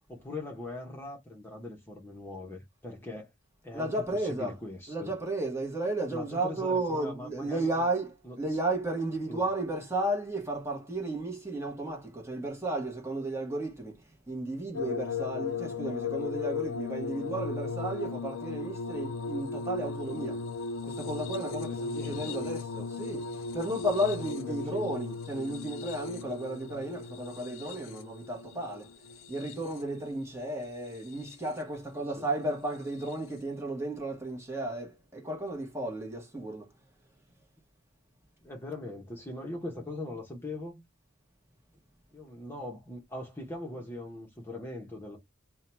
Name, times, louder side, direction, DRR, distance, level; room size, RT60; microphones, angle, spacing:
voice 1, 0.1-3.3 3.6-5.1 6.1-7.9 8.2-8.6 9.3-9.5 21.7-22.5 24.3-24.9 32.0-32.3 38.4-40.8 42.1-45.2, left 1 dB, 10° left, 1.0 m, -41 dB
voice 2, 3.7-4.5 4.9-14.0 14.3-20.5 20.8-23.3 23.5-28.9 29.3-36.7, right 1 dB, 15° right, 1.1 m, -33 dB
sound 1, 14.7-30.0 30.9-31.6 33.0-33.1, left 4 dB, 75° left, 0.5 m, -37 dB
3.7 x 2.3 x 4.3 m
head